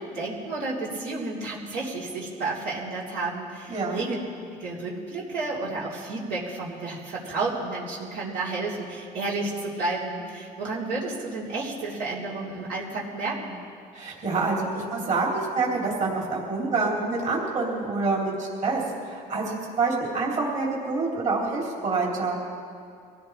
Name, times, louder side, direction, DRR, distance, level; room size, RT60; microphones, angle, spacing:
voice 1, 0.0-4.2 4.5-13.6, right 3 dB, 85° right, -6 dB, 4.0 m, -31 dB
voice 2, 3.7-4.0 13.9-22.3, right 3 dB, 45° right, -3 dB, 3.4 m, -27 dB
24.0 x 16.5 x 3.4 m, 2.4 s
cardioid pair, 110°, 17 cm